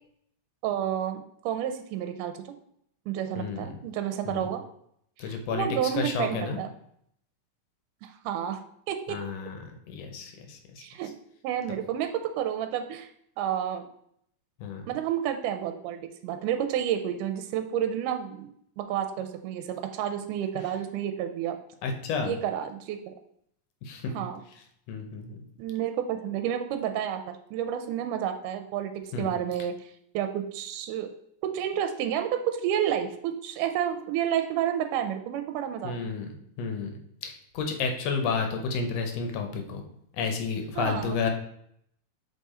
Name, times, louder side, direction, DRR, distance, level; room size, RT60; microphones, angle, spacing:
voice 1, 0.6-2.4 3.1-4.6 5.2-6.7 8.0-9.2 10.8-11.1 11.4-13.1 13.4-13.9 14.9-18.5 18.8-21.6 22.2-23.1 24.2-24.4 25.6-31.1 31.4-36.1 40.8-41.2, right 10 dB, 85° right, 7 dB, 2.1 m, -30 dB
voice 2, 3.3-3.7 4.2-4.5 5.2-5.7 5.9-6.6 9.1-10.8 14.6-14.8 21.8-22.3 23.8-24.3 24.9-25.4 29.1-29.3 35.8-36.3 36.6-36.9 37.2-39.8 40.1-41.3, left 5 dB, 70° left, 4 dB, 1.7 m, -31 dB
7.3 x 3.6 x 4.2 m, 0.70 s
omnidirectional pair, 3.7 m